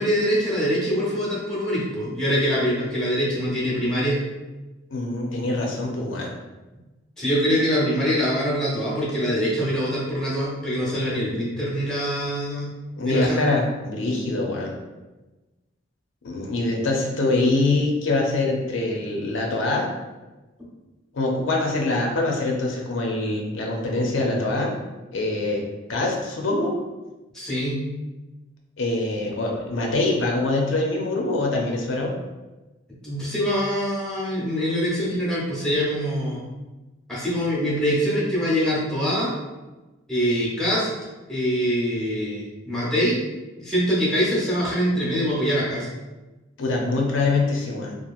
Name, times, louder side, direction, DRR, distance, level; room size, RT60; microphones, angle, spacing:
voice 1, 0.0-4.2 7.2-12.7 13.0-13.4 27.3-27.8 33.0-36.4 37.1-39.4 40.1-40.9 41.3-43.2 43.6-45.9, equal, 5° left, -7 dB, 0.7 m, -24 dB
voice 2, 4.9-6.3 13.0-14.8 16.2-19.9 21.1-24.7 25.1-25.6 25.9-26.8 28.8-32.1 46.6-47.9, left 2 dB, 75° left, 0 dB, 0.5 m, -24 dB
2.9 x 2.4 x 2.3 m, 1.1 s
head